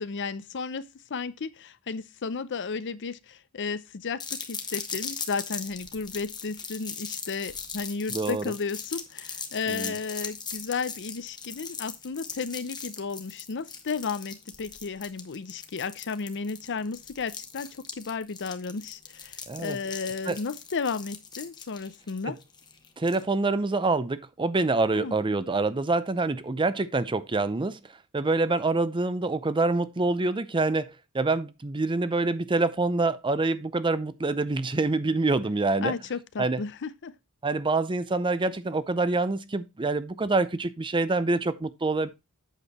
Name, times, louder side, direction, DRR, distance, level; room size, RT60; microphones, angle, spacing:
voice 1, 0.0-22.4 24.9-25.1 35.8-37.1, left 5 dB, 55° left, 0.6 m, -33 dB
sound 1, 4.2-23.2, left 5 dB, 20° left, 1.2 m, -39 dB
voice 2, 8.1-8.5 9.7-9.9 19.5-19.8 20.3-20.4 23.0-27.8 28.1-35.9 36.4-36.6 37.4-42.1, right 3 dB, 20° right, 0.6 m, -26 dB
8.2 x 6.4 x 4.1 m
head